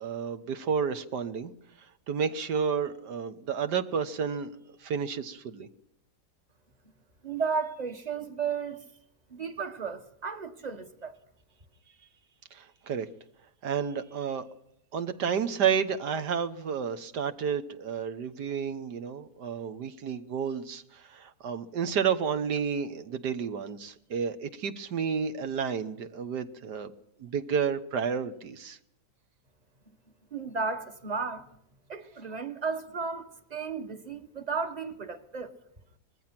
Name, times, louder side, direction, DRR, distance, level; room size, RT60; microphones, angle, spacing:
voice 1, 0.0-1.5 2.1-5.7 12.5-13.1 13.6-14.4 14.9-26.9 27.2-28.8, right 7 dB, 80° right, 1.8 m, -31 dB
voice 2, 7.2-8.8 9.3-11.2 30.3-31.5 31.9-35.5, right 5 dB, 25° right, 1.4 m, -34 dB
24.5 x 20.0 x 6.0 m
omnidirectional pair, 1.8 m